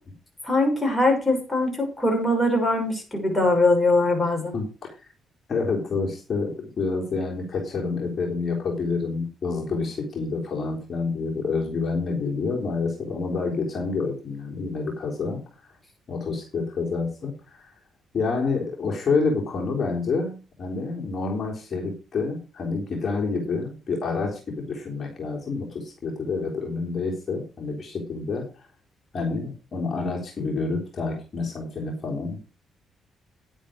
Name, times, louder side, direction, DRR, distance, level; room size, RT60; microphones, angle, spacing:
voice 1, 0.4-4.6, left 2 dB, 5° left, 1 dB, 6.1 m, -22 dB
voice 2, 4.5-5.1 5.5-15.7 16.1-17.7 18.1-28.7 29.1-32.5, left 4 dB, 45° left, -1 dB, 3.5 m, -28 dB
10.5 x 9.0 x 5.0 m, 0.34 s
cardioid pair, 90°, 0 cm